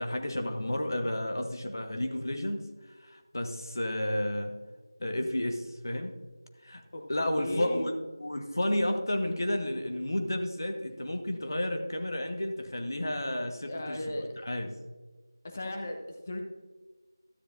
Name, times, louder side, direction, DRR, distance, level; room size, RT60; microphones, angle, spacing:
voice 1, 0.0-2.6 3.0-4.5 5.0-6.1 6.6-6.8 7.1-7.9 8.2-14.7, left 1 dB, 55° left, 5 dB, 1.3 m, -31 dB
voice 2, 7.4-7.9 13.6-14.2 15.4-16.4, left 1 dB, 30° left, 3 dB, 1.2 m, -36 dB
13.0 x 9.8 x 2.6 m, 1.3 s
figure-of-eight pair, 170°, 2 cm